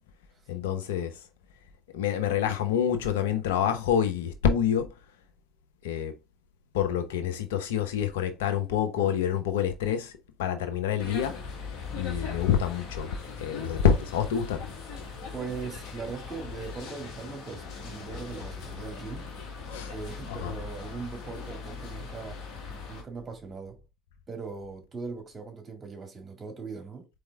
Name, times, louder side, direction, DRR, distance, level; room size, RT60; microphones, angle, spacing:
voice 1, 0.5-1.2 1.9-4.9 5.8-6.1 6.7-10.1 10.4-11.4 11.9-14.7 19.7-19.9 20.4-20.5, left 8 dB, 80° left, 0.7 m, -27 dB
sound 1, 11.0-23.0, left 5 dB, 60° left, 1.8 m, -40 dB
voice 2, 15.3-19.3 19.9-22.4 22.9-23.8 24.3-27.1, right 5 dB, 35° right, 1.9 m, -40 dB
4.2 x 3.4 x 3.5 m
hypercardioid pair, 60°, 0 cm